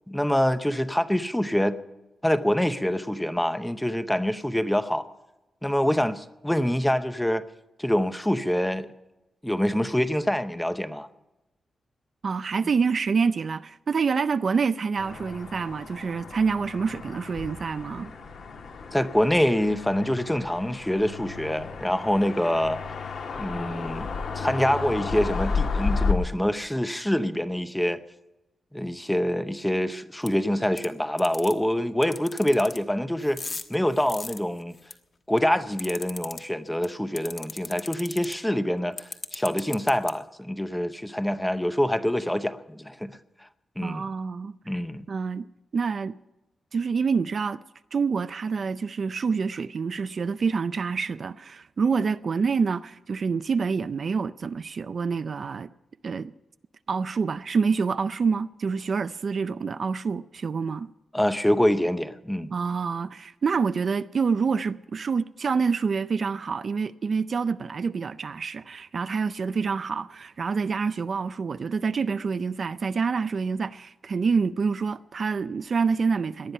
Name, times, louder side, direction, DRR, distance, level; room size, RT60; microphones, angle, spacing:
voice 1, 0.1-1.8 2.2-5.1 5.6-7.4 7.8-8.9 9.4-11.1 18.9-22.8 23.4-24.1 24.4-28.0 28.7-33.4 33.7-34.8 35.3-43.2 43.8-44.0 44.7-45.1 61.1-62.5, equal, 5° left, 0.7 m, -25 dB
voice 2, 12.2-18.1 43.8-44.5 45.1-45.5 45.7-46.2 46.7-47.6 47.9-55.7 56.0-56.3 56.9-60.9 62.5-76.5, right 5 dB, 45° right, 0.4 m, -27 dB
sound 1, 15.0-26.1, left 4 dB, 70° left, 2.5 m, -32 dB
sound 2, 30.3-30.4 30.8-30.9 31.2-31.5 32.0-32.8 33.2-34.9 35.4-36.4 36.8-36.9 37.2-38.3 39.0-40.1, left 3 dB, 35° left, 1.2 m, -36 dB
19.0 x 12.0 x 5.5 m
wide cardioid pair, 160°, 0 cm